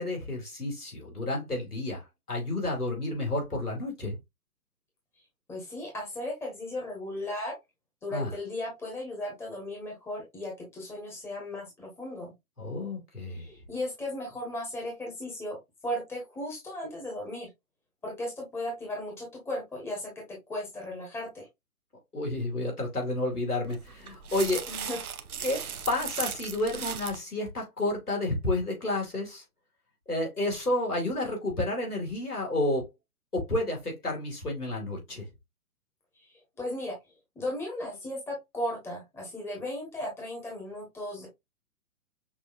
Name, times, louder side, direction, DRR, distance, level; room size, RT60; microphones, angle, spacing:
voice 1, 0.0-4.2 8.1-8.3 12.6-13.6 22.1-24.7 25.4-29.4 30.1-32.9 33.3-35.3, left 2 dB, 85° left, 2.9 m, -30 dB
voice 2, 5.5-7.6 8.0-12.3 13.3-15.6 15.8-17.5 18.0-20.1 20.5-21.5 24.7-25.0 36.6-37.0 37.3-41.3, left 1 dB, 5° left, 1.3 m, -36 dB
sound 1, 23.6-27.2, right 7 dB, 75° right, 0.7 m, -37 dB
6.0 x 2.9 x 2.4 m
figure-of-eight pair, 130°, 44 cm